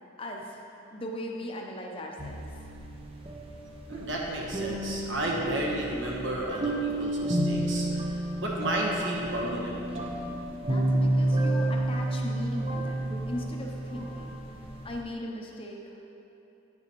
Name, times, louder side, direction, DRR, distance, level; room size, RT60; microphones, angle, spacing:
voice 1, 0.2-0.7 0.9-2.4 10.6-14.4 14.8-16.1, left 1 dB, 25° left, 0 dB, 0.6 m, -38 dB
sound 1, 2.2-15.0, right 1 dB, 30° right, 0.5 m, -31 dB
voice 2, 3.9-8.1 8.4-9.8, right 1 dB, 65° right, -2 dB, 1.1 m, -32 dB
9.2 x 6.6 x 3.0 m, 2.9 s
head